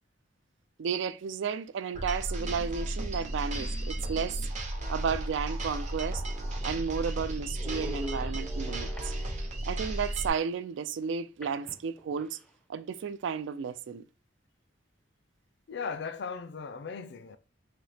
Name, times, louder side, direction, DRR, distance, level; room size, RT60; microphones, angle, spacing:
voice 1, 0.8-4.4 4.9-6.2 6.6-9.1 9.7-12.4 12.7-14.0, right 6 dB, 90° right, 0.4 m, -33 dB
sound 1, 1.9-10.3, right 1 dB, 40° right, 0.7 m, -34 dB
sound 2, 4.7-4.8 5.4-5.5 5.7-9.7 11.4-12.5, equal, 5° left, 0.4 m, -46 dB
voice 2, 15.7-17.4, left 5 dB, 65° left, 0.4 m, -37 dB
4.0 x 2.7 x 3.4 m
head